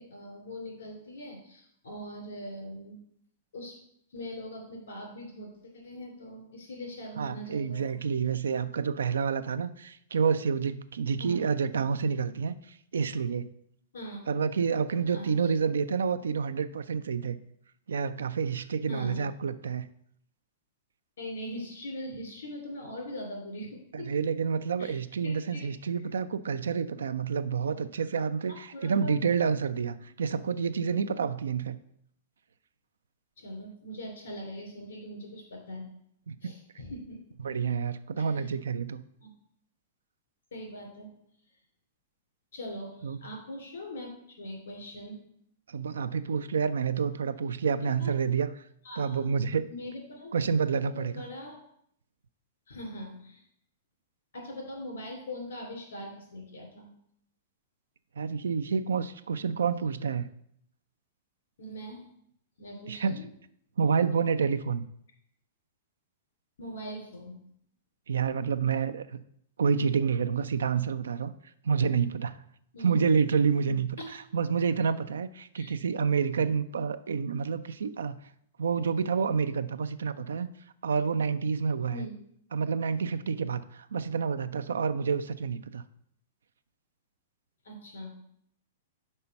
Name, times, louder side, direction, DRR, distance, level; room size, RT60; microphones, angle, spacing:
voice 1, 0.0-3.0 3.5-3.8 4.1-7.9 11.2-11.4 13.9-14.2 15.1-15.5 18.9-19.2 21.2-24.1 24.8-25.0 25.2-25.7 28.5-29.1 33.4-35.9 36.4-37.2 38.2-38.5 39.2-39.3 40.5-41.1 42.5-45.2 48.0-48.1 48.8-49.3 49.7-50.3 50.7-51.6 52.7-53.4 54.3-56.9 61.6-62.0 62.6-63.2 66.6-67.4 72.7-72.9 74.0-74.2 75.5-75.8 81.9-82.1 87.6-88.1, equal, 85° left, 1 dB, 2.8 m, -41 dB
voice 2, 7.2-13.5 14.3-17.4 17.9-19.9 23.9-31.8 36.3-36.5 37.4-39.0 43.0-43.2 45.7-48.5 49.0-49.7 50.3-51.2 58.2-60.3 62.9-63.2 63.8-64.8 68.1-69.2 69.6-71.3 71.6-72.4 72.8-78.1 78.6-80.5 80.8-82.0 82.5-85.8, right 6 dB, 85° right, 13 dB, 0.4 m, -28 dB
5.5 x 4.3 x 5.7 m, 0.69 s
hypercardioid pair, 125°, 0 cm